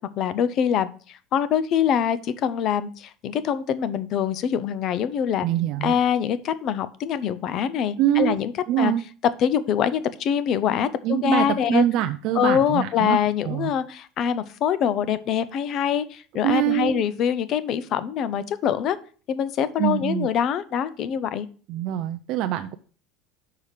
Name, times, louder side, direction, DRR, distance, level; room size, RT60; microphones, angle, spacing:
voice 1, 0.2-5.5 5.8-8.5 8.8-8.9 9.4-11.8 12.3-19.0 19.3-21.5, left 8 dB, 35° left, 14 dB, 0.5 m, -24 dB
voice 2, 5.4-6.0 8.0-8.4 8.7-9.0 11.0-13.2 13.4-13.7 16.4-17.0 19.8-20.3 21.7-22.8, right 12 dB, 45° right, 7 dB, 0.4 m, -24 dB
5.6 x 4.9 x 6.5 m, 0.40 s
cardioid pair, 170°, 0 cm